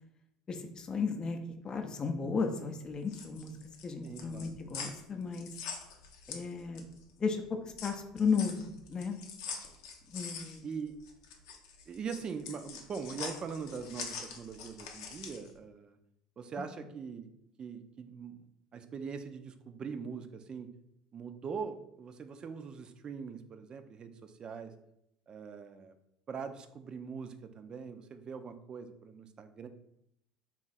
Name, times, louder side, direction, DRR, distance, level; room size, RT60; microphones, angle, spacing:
voice 1, 0.5-1.4 1.6-3.5 3.8-5.5 6.3-6.8 7.2-7.4 7.8-9.2 10.1-10.6, left 5 dB, 35° left, 5 dB, 0.6 m, -34 dB
sound 1, 2.9-7.0 7.4-15.5, left 6 dB, 80° left, 0.6 m, -44 dB
voice 2, 4.0-4.6 10.6-11.0 11.9-16.0 16.4-17.3 17.6-18.4 18.7-20.7 21.1-24.7 25.3-25.9 26.3-29.7, right 6 dB, 40° right, 9 dB, 0.4 m, -42 dB
3.7 x 2.4 x 4.1 m, 0.78 s
hypercardioid pair, 75°, 2 cm